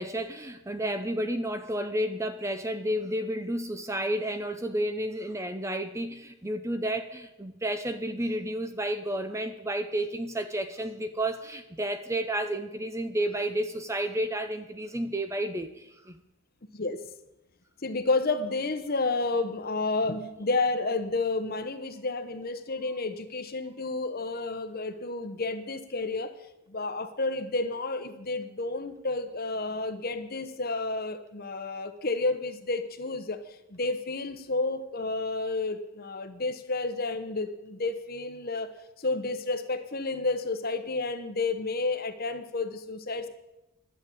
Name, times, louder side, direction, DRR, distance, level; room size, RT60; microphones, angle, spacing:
voice 1, 0.0-16.2, right 1 dB, 15° right, 9 dB, 0.6 m, -31 dB
voice 2, 17.8-26.3 26.7-33.4 33.7-38.7 39.0-43.3, left 3 dB, 45° left, 9 dB, 1.0 m, -30 dB
11.5 x 7.8 x 8.6 m, 0.91 s
head